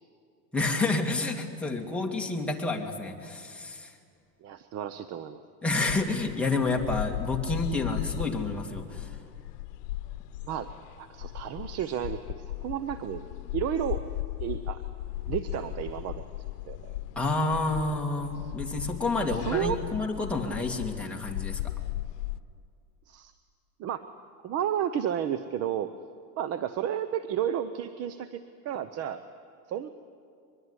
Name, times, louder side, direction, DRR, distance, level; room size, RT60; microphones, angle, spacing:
voice 1, 0.5-3.9 5.6-9.1 17.2-21.6, left 3 dB, ahead, -1 dB, 2.3 m, -29 dB
voice 2, 4.4-5.4 10.4-10.7 11.0-13.2 13.5-14.0 14.4-14.8 15.3-17.0 19.4-19.8 23.1-23.3 23.8-24.0 24.4-25.9 26.4-29.2 29.7-29.9, right 10 dB, 30° right, 12 dB, 0.8 m, -32 dB
sound 1, 5.9-22.4, left 15 dB, 85° left, 0.9 m, -37 dB
23.0 x 22.0 x 9.8 m, 2.3 s
supercardioid pair, 145°, 47 cm